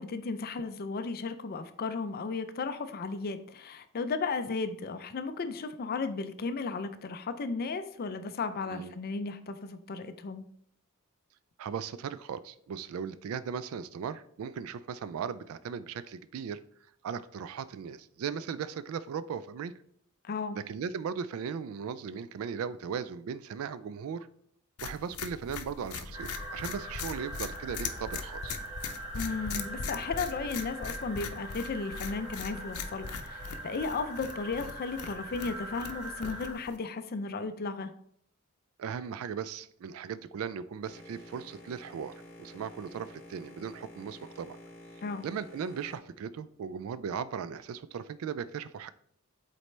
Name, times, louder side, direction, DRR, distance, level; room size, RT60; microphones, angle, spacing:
voice 1, 0.0-10.4 20.2-20.6 29.1-37.9 45.0-45.3, left 4 dB, 45° left, 10 dB, 0.4 m, -35 dB
voice 2, 11.6-16.6 17.0-19.7 20.5-24.3 24.8-28.6 38.8-42.1 42.4-44.6 45.2-48.9, right 7 dB, 70° right, 14 dB, 0.3 m, -37 dB
sound 1, 24.8-36.8, left 5 dB, 90° left, 0.6 m, -40 dB
sound 2, 26.1-36.5, right 1 dB, 20° right, 1.1 m, -43 dB
Boat Water vehicle, 40.8-47.2, left 1 dB, 10° left, 1.5 m, -51 dB
8.0 x 4.2 x 3.2 m, 0.66 s
head